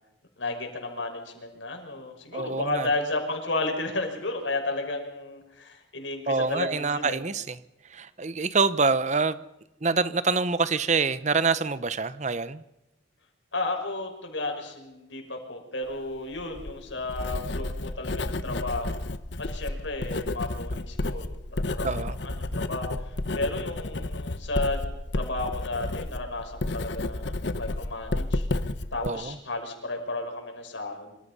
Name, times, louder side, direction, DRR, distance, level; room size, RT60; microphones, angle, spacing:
voice 1, 0.4-7.2 13.5-19.0 19.4-24.9 25.1-28.5 28.9-31.2, left 2 dB, 90° left, 5.9 m, -33 dB
voice 2, 2.3-2.9 6.3-7.6 7.9-9.4 9.8-12.6 21.8-22.2 29.0-29.4, right 4 dB, 40° right, 0.9 m, -26 dB
Writing, 16.3-29.1, left 2 dB, 70° left, 1.1 m, -31 dB
26.0 x 25.5 x 5.6 m
head